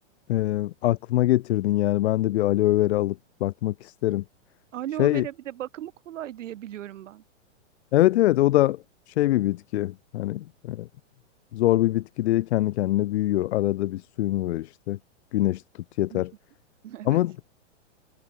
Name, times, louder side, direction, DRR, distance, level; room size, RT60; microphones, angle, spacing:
voice 1, 0.3-4.2 5.0-5.3 7.9-10.9 11.5-15.0 15.3-15.6 16.0-16.3 17.1-17.3, left 15 dB, 60° left, 0.5 m, -23 dB
voice 2, 4.7-7.2 16.1-16.2 16.8-17.2, right 12 dB, 75° right, 1.1 m, -36 dB
hypercardioid pair, 160°, 37 cm